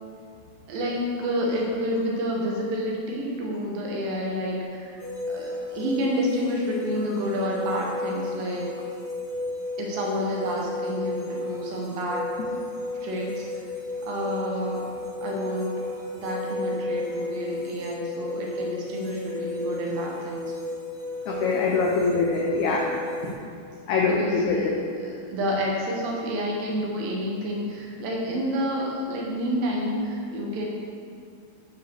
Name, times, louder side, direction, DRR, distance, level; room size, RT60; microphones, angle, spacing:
voice 1, 0.7-8.7 9.8-12.3 13.0-13.7 14.0-14.9 15.2-15.8 16.1-20.5 24.1-30.7, equal, 75° right, -2 dB, 2.6 m, -29 dB
sound 1, 5.0-23.3, left 2 dB, 40° right, 1.3 m, -33 dB
voice 2, 21.3-22.9 23.9-24.6, left 4 dB, 85° left, -2 dB, 1.6 m, -23 dB
6.8 x 4.7 x 6.5 m, 2.4 s
omnidirectional pair, 4.3 m